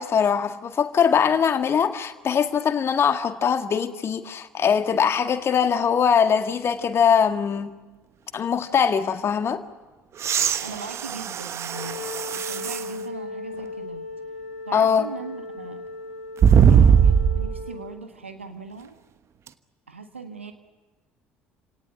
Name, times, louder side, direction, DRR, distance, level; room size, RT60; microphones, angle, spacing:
voice 1, 0.0-7.7 8.3-9.6 14.7-15.1, left 7 dB, 40° left, 1.9 m, -22 dB
sound 1, 10.2-12.9 13.6-13.7 16.4-17.6 19.5-19.6, right 7 dB, 45° right, 1.2 m, -20 dB
voice 2, 10.6-14.0 14.7-15.9 16.7-18.9 19.9-20.5, right 4 dB, 90° right, 1.5 m, -39 dB
Wind instrument woodwind instrument, 11.6-17.9, left 3 dB, 85° left, 2.6 m, -37 dB
28.5 x 18.0 x 9.9 m
figure-of-eight pair, 55°, 6 cm